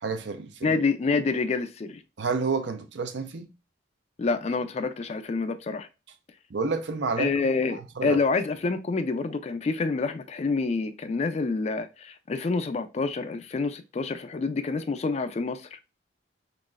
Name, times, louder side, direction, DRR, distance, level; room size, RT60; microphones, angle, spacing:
voice 1, 0.0-0.7 2.2-3.5 6.5-7.3 7.7-8.2, right 4 dB, 65° right, 0.5 m, -29 dB
voice 2, 0.6-2.0 4.2-5.9 7.2-15.8, left 4 dB, 35° left, 0.3 m, -27 dB
3.9 x 3.0 x 2.3 m
head